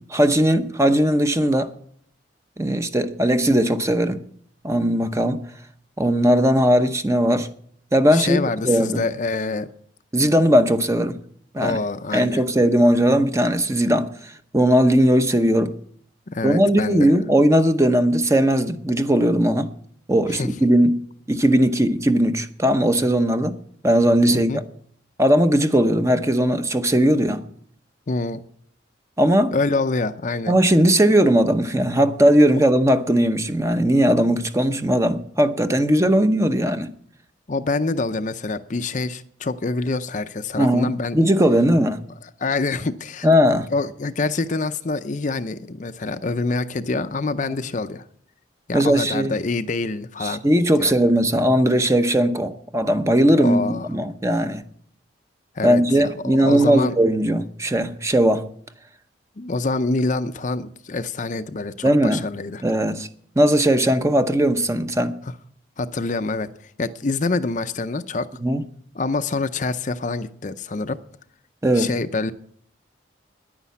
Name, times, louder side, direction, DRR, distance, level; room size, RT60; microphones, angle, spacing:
voice 1, 0.1-1.7 2.6-4.2 4.6-5.4 6.0-7.5 7.9-9.0 10.1-11.2 11.5-11.8 12.1-15.8 16.4-19.7 20.1-21.0 21.3-23.6 23.8-24.5 25.2-27.4 29.2-29.5 30.5-36.9 40.6-42.0 43.2-43.7 48.7-49.4 50.2-54.6 55.6-58.4 61.8-62.2 62.6-63.1 63.4-65.2 68.4-68.6 71.6-71.9, equal, 15° right, 0.8 m, -18 dB
voice 2, 8.1-9.7 11.6-12.4 16.3-17.2 20.3-20.5 24.3-24.6 28.1-28.4 29.5-30.5 32.5-32.6 37.5-41.2 42.2-43.3 43.7-48.0 48.7-50.4 50.8-50.9 53.4-53.9 55.6-56.9 59.4-62.6 65.8-68.3 68.9-71.0 71.8-72.3, left 3 dB, 40° left, 0.5 m, -26 dB
10.5 x 9.8 x 8.3 m
head